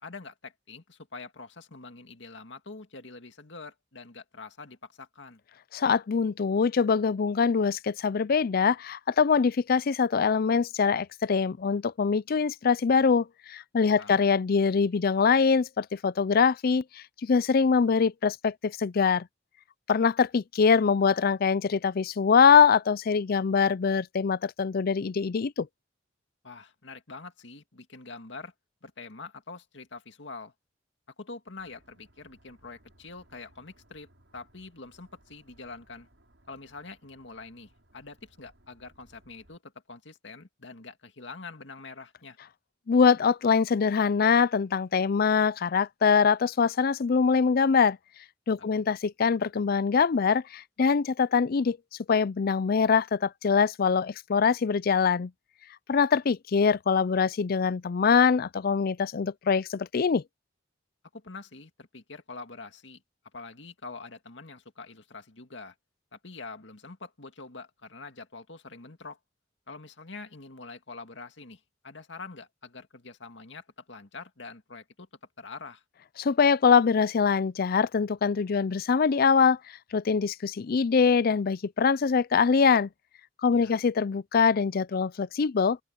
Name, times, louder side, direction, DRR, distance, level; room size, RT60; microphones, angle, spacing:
voice 1, 0.0-5.4 13.9-14.2 26.4-28.5 28.8-30.5 31.2-36.1 36.5-42.4 48.6-48.9 61.1-63.0 63.3-65.7 66.1-69.2 69.7-75.1 75.4-75.8 83.5-83.8, left 3 dB, 70° left, 2.2 m, -45 dB
voice 2, 5.7-19.3 19.9-25.7 42.9-48.0 48.5-51.8 52.1-55.3 55.9-60.2 76.2-79.6 79.9-82.9 83.4-85.8, left 5 dB, 55° left, 0.4 m, -23 dB
sound 1, 31.6-39.6, right 1 dB, 75° right, 5.5 m, -63 dB
open air
head